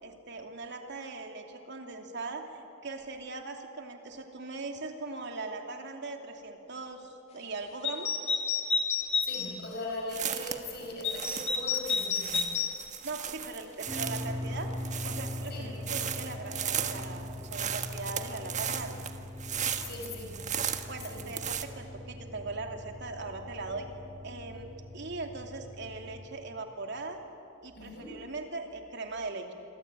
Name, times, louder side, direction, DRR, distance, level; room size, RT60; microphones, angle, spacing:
voice 1, 0.0-8.2 9.9-10.0 13.0-14.7 15.0-19.0 20.9-23.9 24.2-27.2 27.6-29.5, right 3 dB, 60° right, 4 dB, 2.9 m, -40 dB
sound 1, 7.8-9.5 11.0-12.7, left 5 dB, 35° left, 3.0 m, -30 dB
voice 2, 9.2-12.5 15.5-15.7 19.8-20.4 21.1-21.3 27.7-28.2, left 2 dB, 55° left, 0 dB, 5.5 m, -40 dB
sound 2, 10.1-21.6, right 8 dB, 40° right, 1.5 m, -36 dB
sound 3, 13.9-26.2, left 1 dB, 15° right, 2.9 m, -41 dB
27.0 x 24.0 x 9.1 m, 3.0 s
head